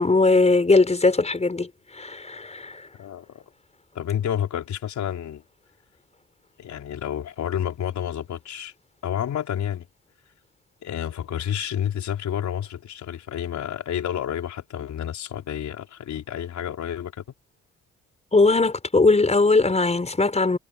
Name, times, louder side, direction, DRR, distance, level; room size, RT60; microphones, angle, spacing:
voice 1, 0.0-2.9 18.3-20.6, left 3 dB, 20° left, 6.3 m, -20 dB
voice 2, 3.0-3.4 3.9-5.4 6.6-8.7 9.0-9.8 10.8-17.2, left 10 dB, 65° left, 4.8 m, -30 dB
cardioid pair, 90°, 30 cm